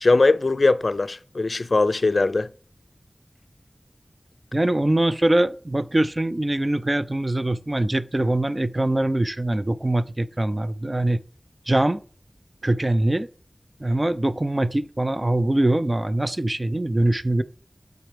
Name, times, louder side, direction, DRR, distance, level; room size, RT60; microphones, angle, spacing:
voice 1, 0.0-2.5, left 3 dB, 75° left, 0.3 m, -20 dB
voice 2, 4.5-11.2 11.7-12.0 12.6-13.3 13.8-17.4, right 1 dB, 35° right, 0.5 m, -23 dB
8.1 x 4.5 x 5.0 m
wide cardioid pair, 55°, 0 cm